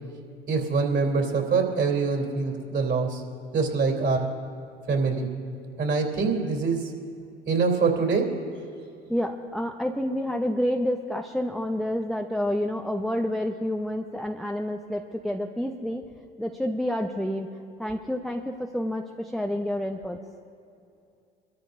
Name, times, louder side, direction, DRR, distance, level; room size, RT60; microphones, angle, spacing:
voice 1, 0.5-3.2 3.5-4.4 4.9-5.3 5.8-6.9 7.5-8.4, right 4 dB, 35° right, 1 dB, 3.2 m, -24 dB
voice 2, 9.1-16.0 16.4-17.5 17.8-20.2, left 1 dB, ahead, 3 dB, 0.8 m, -29 dB
25.0 x 14.0 x 2.6 m, 2.5 s
figure-of-eight pair, 65°, 29 cm